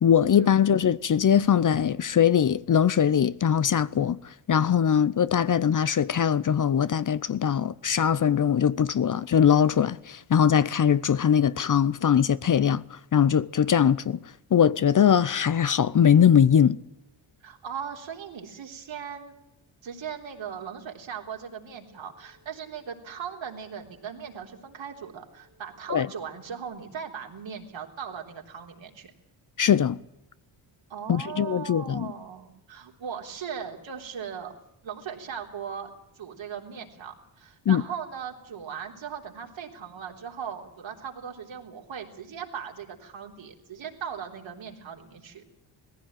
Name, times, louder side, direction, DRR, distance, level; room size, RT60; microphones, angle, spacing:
voice 1, 0.0-4.2 4.5-12.8 13.1-14.2 14.5-16.8 25.9-26.1 29.6-30.0 31.1-32.1 37.7-37.8, left 8 dB, 40° left, 0.7 m, -21 dB
voice 2, 17.4-19.3 19.8-29.1 30.9-34.5 34.8-45.4, right 7 dB, 65° right, 3.7 m, -38 dB
sound 1, 21.6-26.6, equal, 70° left, 7.7 m, -64 dB
18.5 x 15.5 x 9.1 m
supercardioid pair, 60°, 49 cm